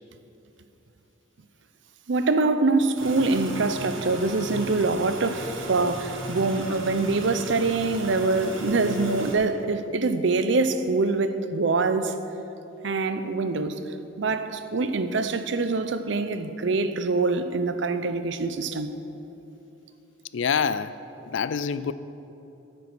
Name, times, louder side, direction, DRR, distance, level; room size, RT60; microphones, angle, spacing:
voice 1, 2.1-12.2 12.8-13.8 14.2-18.9, right 3 dB, 65° right, 0.6 m, -24 dB
sound 1, 3.0-9.4, equal, 90° right, 1.6 m, -35 dB
voice 2, 20.3-20.9 21.3-21.9, left 6 dB, 70° left, 0.4 m, -26 dB
9.4 x 9.2 x 6.1 m
head